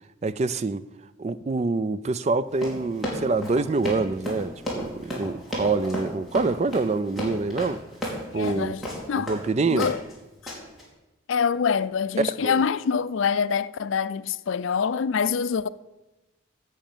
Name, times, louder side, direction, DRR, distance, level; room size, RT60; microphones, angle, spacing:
voice 1, 0.2-0.9 1.2-7.8 8.3-8.8 9.2-9.9 12.2-12.6, right 3 dB, 30° right, 0.3 m, -26 dB
Run, 2.5-9.4 9.8-10.1 10.5-10.8, equal, ahead, 3.0 m, -33 dB
voice 2, 8.3-9.3 9.7-10.0 11.3-15.7, left 6 dB, 70° left, 0.4 m, -25 dB
9.1 x 7.9 x 7.3 m
head